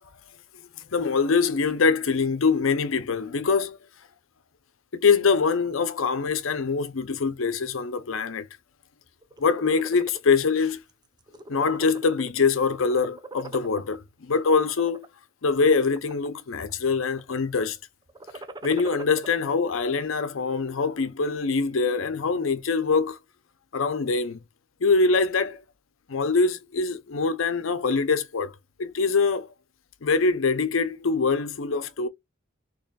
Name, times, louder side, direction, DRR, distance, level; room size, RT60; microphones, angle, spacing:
voice 1, 0.9-3.8 4.9-8.5 9.4-10.8 11.5-15.0 15.4-17.8 18.6-23.2 23.7-24.4 24.8-25.6 26.1-28.5 28.8-29.5 30.0-32.1, left 4 dB, 80° left, 0.6 m, -24 dB
sound 1, 9.2-10.2 10.7-10.9 11.2-12.5 12.8-14.0 14.6-15.1 15.6-16.4 16.7-17.2 18.1-19.3, right 2 dB, 20° right, 0.5 m, -41 dB
4.2 x 2.9 x 2.3 m
head